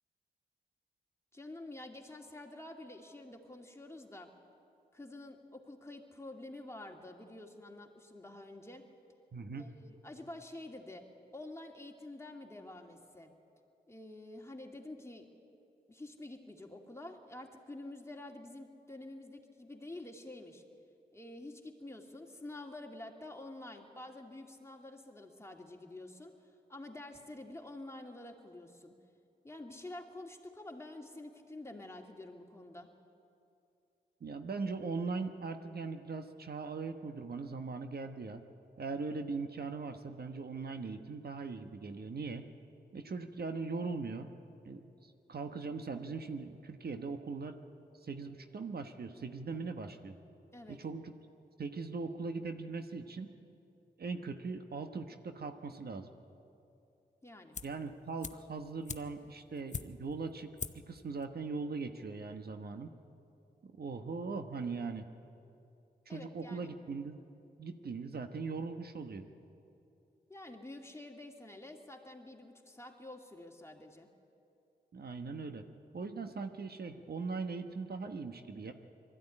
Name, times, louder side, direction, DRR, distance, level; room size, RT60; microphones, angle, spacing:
voice 1, 1.3-4.3 4.9-8.9 9.6-11.1 11.3-13.3 13.9-15.3 15.9-20.6 21.1-26.3 26.7-28.9 29.4-32.9 50.5-50.8 57.2-57.6 66.1-66.7 70.3-74.1, left 2 dB, 15° left, 2 dB, 2.5 m, -48 dB
voice 2, 9.3-9.6 34.2-38.4 38.8-42.5 42.9-44.3 44.7-47.6 48.0-50.1 50.7-51.1 51.6-53.3 54.0-56.1 57.6-62.9 63.6-65.1 66.1-67.2 67.6-69.3 74.9-75.7 75.9-78.7, right 4 dB, 65° right, 7 dB, 1.2 m, -40 dB
sound 1, 57.5-57.9 58.2-60.2 60.6-61.0 61.2-61.3, left 5 dB, 45° left, 0.8 m, -43 dB
20.5 x 14.0 x 9.9 m, 2.6 s
cardioid pair, 55°, 17 cm